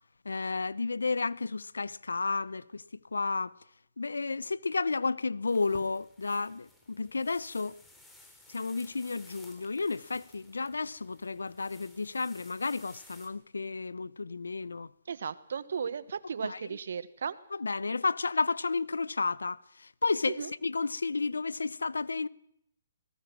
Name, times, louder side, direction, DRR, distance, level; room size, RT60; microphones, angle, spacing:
voice 1, 0.2-2.8 3.1-3.5 4.0-7.8 8.5-14.9 16.4-16.6 17.5-22.3, left 4 dB, 90° left, 0.7 m, -32 dB
sound 1, 5.4-13.3, left 2 dB, 5° left, 3.7 m, -57 dB
voice 2, 15.1-17.4 20.3-20.5, right 6 dB, 65° right, 1.3 m, -35 dB
22.5 x 19.5 x 6.1 m
hypercardioid pair, 145°, 0 cm